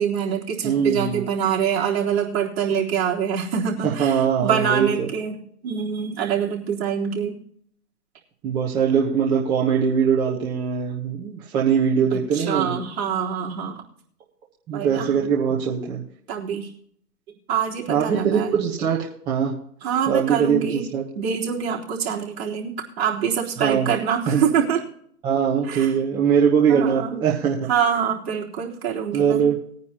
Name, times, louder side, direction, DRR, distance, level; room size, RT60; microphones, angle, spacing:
voice 1, 0.0-7.4 12.1-13.8 14.7-15.1 16.3-16.7 17.5-18.6 19.8-20.9 21.2-24.8 25.6-25.9 26.7-27.2 27.7-29.5, right 7 dB, 40° right, -5 dB, 3.8 m, -25 dB
voice 2, 0.6-1.2 3.8-5.1 8.4-12.8 14.7-16.0 17.9-19.5 20.1-20.7 20.9-21.0 23.6-23.9 24.3-24.4 25.2-27.6 29.1-29.6, right 7 dB, 10° right, -5 dB, 0.9 m, -21 dB
20.5 x 9.5 x 2.9 m, 0.64 s
hypercardioid pair, 150°, 48 cm